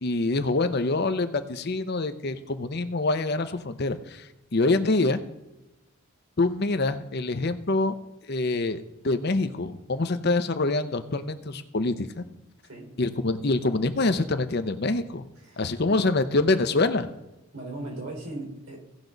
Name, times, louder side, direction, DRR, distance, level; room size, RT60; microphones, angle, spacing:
voice 1, 0.0-5.2 6.4-7.9 8.3-12.3 13.0-15.3 15.6-17.1, left 2 dB, 45° left, 10 dB, 0.7 m, -25 dB
voice 2, 12.6-12.9 15.4-15.7 17.5-18.8, right 2 dB, 75° right, -3 dB, 4.3 m, -38 dB
17.0 x 6.1 x 3.9 m, 0.97 s
head